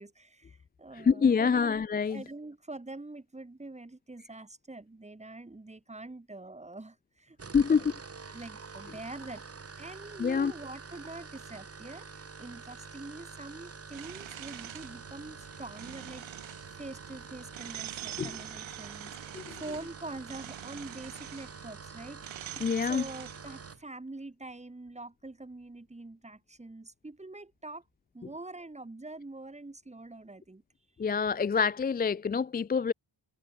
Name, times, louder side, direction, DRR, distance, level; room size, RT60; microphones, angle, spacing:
voice 1, 0.0-1.8 2.1-7.4 7.8-7.9 8.3-9.4 9.8-19.2 19.5-22.2 22.5-27.8 28.1-30.6, right 2 dB, 15° right, 4.2 m, -45 dB
voice 2, 1.0-2.2 7.5-7.9 10.2-10.5 18.2-18.3 19.3-19.6 22.6-23.0 31.0-32.9, left 6 dB, 25° left, 0.3 m, -26 dB
sound 1, 7.3-23.8, right 4 dB, 30° right, 4.1 m, -47 dB
sound 2, 13.9-23.8, right 13 dB, 85° right, 1.0 m, -45 dB
wide cardioid pair, 135°, 45 cm